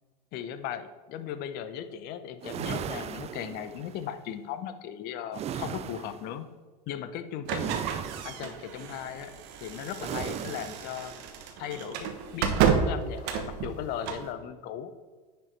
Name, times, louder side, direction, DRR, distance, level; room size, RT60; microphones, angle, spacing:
voice 1, 0.3-6.5 6.9-7.9 8.2-9.3 9.6-11.1 11.6-14.9, left 9 dB, 50° left, 11 dB, 0.8 m, -37 dB
sound 1, 2.4-4.0 5.3-6.3 7.5-8.6 10.0-10.9, right 9 dB, 30° right, 0.5 m, -36 dB
sound 2, 7.4-14.3, right 7 dB, 60° right, 1.2 m, -31 dB
9.9 x 5.3 x 4.6 m, 1.4 s
hypercardioid pair, 80°, 20 cm